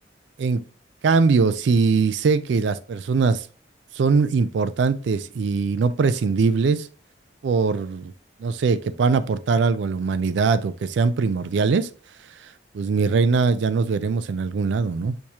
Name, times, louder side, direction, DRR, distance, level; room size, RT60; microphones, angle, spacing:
voice 1, 1.0-3.5 3.9-6.9 7.4-8.1 8.4-11.9 12.7-15.1, right 4 dB, 75° right, 0.4 m, -21 dB
6.5 x 2.8 x 2.8 m
head